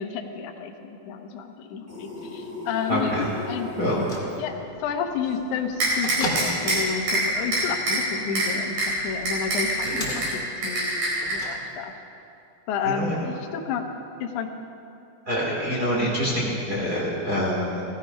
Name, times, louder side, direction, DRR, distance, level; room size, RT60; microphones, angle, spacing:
voice 1, 0.0-3.7 4.4-11.9 12.7-13.8 14.2-14.5, left 6 dB, 90° left, 3 dB, 1.7 m, -31 dB
sound 1, 1.9-4.3, left 2 dB, 5° right, 1.9 m, -37 dB
voice 2, 2.9-3.2 3.8-4.0 9.8-10.1 12.8-13.1 15.3-17.8, equal, 25° right, -6 dB, 2.5 m, -26 dB
Bell / Microwave oven, 3.8-12.1, left 1 dB, 25° left, 1.0 m, -38 dB
sound 2, 5.8-6.8 7.1-7.2 7.5-8.0 8.4-8.5 8.8-8.9 9.3-10.3 10.6-11.3, right 2 dB, 55° right, 5.9 m, -24 dB
17.0 x 14.5 x 5.3 m, 2.6 s
omnidirectional pair, 5.1 m